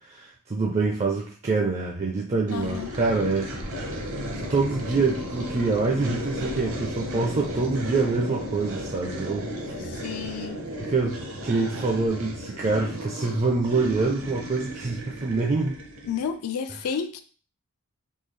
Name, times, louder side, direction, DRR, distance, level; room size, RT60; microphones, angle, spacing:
voice 1, 0.1-3.8 4.5-9.5 10.9-15.8, right 3 dB, 30° right, 0.4 m, -25 dB
voice 2, 2.5-2.9 9.8-10.6 16.1-17.2, left 7 dB, 75° left, 0.4 m, -31 dB
sound 1, 2.5-16.3, equal, 65° right, 0.8 m, -35 dB
3.6 x 2.3 x 3.2 m
head